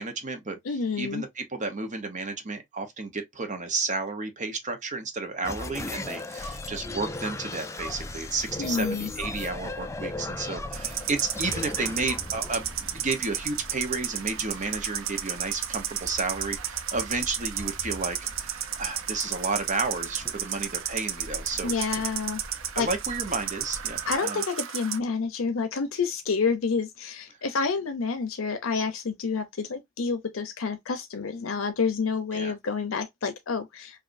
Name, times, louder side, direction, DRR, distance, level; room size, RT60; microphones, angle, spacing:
voice 1, 0.0-0.6 1.0-21.7 22.7-24.4 32.3-32.5, right 3 dB, 35° right, 0.9 m, -32 dB
voice 2, 0.7-1.2 8.6-9.1 21.6-22.4 22.8-22.9 24.1-34.0, left 5 dB, 85° left, 0.6 m, -29 dB
sound 1, 5.4-13.6, left 2 dB, 15° left, 0.4 m, -36 dB
sound 2, 7.9-24.2, equal, ahead, 0.8 m, -46 dB
sound 3, 10.7-25.0, right 10 dB, 75° right, 0.6 m, -33 dB
5.0 x 2.6 x 2.6 m
head